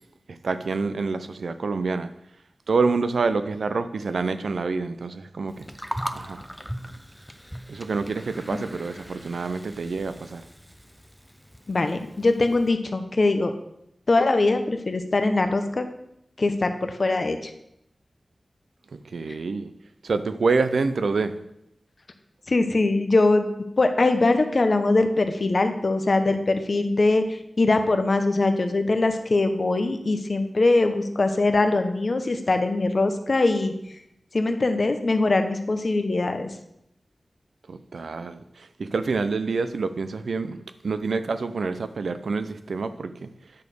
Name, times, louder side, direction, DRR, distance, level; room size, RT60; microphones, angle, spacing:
voice 1, 0.3-2.1 2.7-5.7 6.1-6.4 7.7-10.4 18.9-19.7 20.0-21.4 37.7-40.6 40.8-43.3, right 4 dB, 85° right, 11 dB, 0.5 m, -27 dB
Gurgling, 5.5-12.7, equal, ahead, 0.8 m, -39 dB
voice 2, 11.7-13.5 14.1-15.9 16.4-17.5 22.5-23.5 23.8-34.0 34.3-36.5, left 2 dB, 60° left, 7 dB, 1.0 m, -22 dB
9.7 x 4.3 x 6.7 m, 0.78 s
cardioid pair, 50°, 0 cm